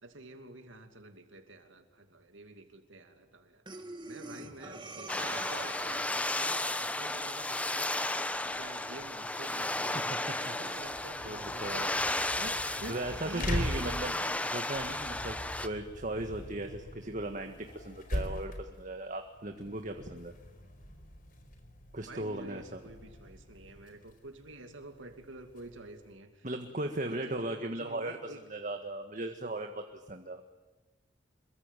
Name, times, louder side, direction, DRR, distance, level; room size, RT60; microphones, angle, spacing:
voice 1, 0.0-3.6 4.1-7.9 8.6-12.1 12.3-14.4 22.0-26.5 27.0-28.4, right 2 dB, 85° right, 6 dB, 2.8 m, -48 dB
Breathing, 3.7-6.2, right 2 dB, 25° right, 2.3 m, -45 dB
sound 1, 5.1-15.7, left 1 dB, 5° left, 1.1 m, -34 dB
sound 2, 10.7-26.1, equal, 45° left, 4.5 m, -42 dB
voice 2, 11.2-11.9 12.9-14.1 14.5-20.3 21.9-22.8 26.4-30.4, right 1 dB, 40° right, 5 dB, 1.7 m, -37 dB
27.0 x 23.0 x 9.2 m, 1.2 s
head